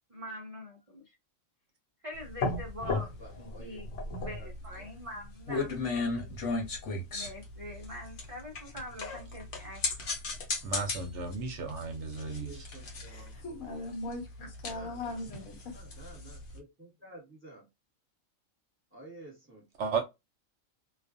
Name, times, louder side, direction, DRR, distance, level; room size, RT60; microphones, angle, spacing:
voice 1, 0.1-1.1 2.0-3.1 3.4-3.9 4.2-5.7 7.1-9.8 10.1-10.2, left 1 dB, 50° right, 0.4 m, -44 dB
sound 1, 2.2-16.6, left 3 dB, 65° left, 1.1 m, -36 dB
voice 2, 2.8-4.9 12.2-13.3 14.7-17.7 18.9-19.7, right 1 dB, 10° right, 1.0 m, -52 dB
voice 3, 10.6-12.5 19.8-20.0, right 5 dB, 65° right, 0.8 m, -34 dB
voice 4, 13.1-15.7, left 2 dB, 80° left, 1.3 m, -40 dB
2.4 x 2.4 x 2.5 m
omnidirectional pair, 1.4 m